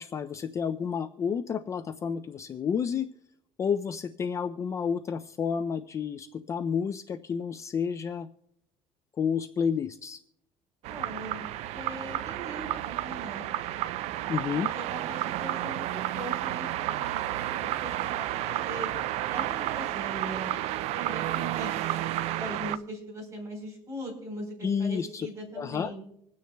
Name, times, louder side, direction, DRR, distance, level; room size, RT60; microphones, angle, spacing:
voice 1, 0.0-3.1 3.6-8.3 9.2-10.2 14.3-14.7 24.6-25.3 25.6-25.9, left 6 dB, 25° left, 9 dB, 0.3 m, -30 dB
sound 1, 10.8-22.8, right 13 dB, 65° right, 0.4 m, -31 dB
voice 2, 10.9-11.5 11.7-13.5 14.4-15.9 16.1-18.9 19.3-20.5 21.0-21.9 22.4-26.0, right 1 dB, 25° right, 0 dB, 3.8 m, -40 dB
25.5 x 9.4 x 2.2 m, 0.76 s
cardioid pair, 160°, 12 cm